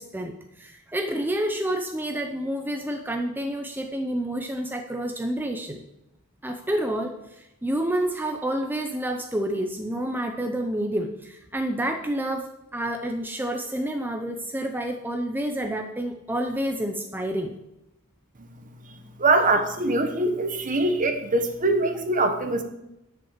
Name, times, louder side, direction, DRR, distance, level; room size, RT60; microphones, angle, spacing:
voice 1, 0.0-5.8 6.4-17.5, right 1 dB, 10° right, 4 dB, 0.7 m, -29 dB
voice 2, 19.2-22.6, right 2 dB, 35° right, 7 dB, 1.1 m, -23 dB
10.5 x 6.0 x 7.3 m, 0.87 s
head